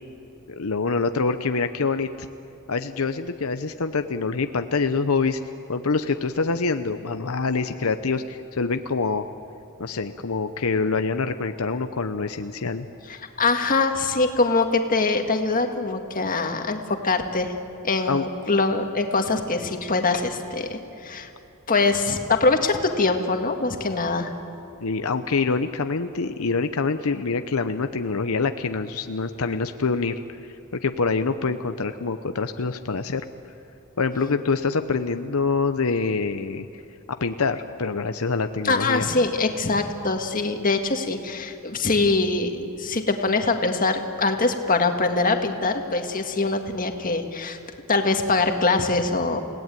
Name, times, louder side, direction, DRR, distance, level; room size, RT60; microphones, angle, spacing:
voice 1, 0.5-2.3 2.7-5.4 5.7-9.3 9.8-12.9 18.1-18.3 24.8-30.2 30.8-33.2 34.0-36.8 37.1-39.1, left 4 dB, 85° left, 8 dB, 0.8 m, -25 dB
voice 2, 13.4-17.5 17.8-21.3 21.7-24.3 38.6-47.6 47.9-49.4, left 3 dB, 40° left, 5 dB, 1.9 m, -23 dB
30.0 x 17.5 x 9.2 m, 3.0 s
head